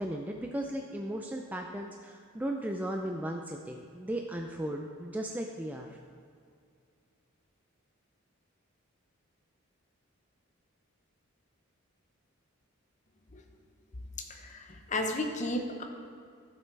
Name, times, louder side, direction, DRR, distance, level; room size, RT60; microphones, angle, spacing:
voice 1, 0.0-6.0, right 1 dB, 10° right, 2 dB, 0.3 m, -36 dB
voice 2, 14.3-15.8, left 1 dB, 35° left, 3 dB, 0.8 m, -33 dB
12.5 x 7.4 x 3.3 m, 2.3 s
head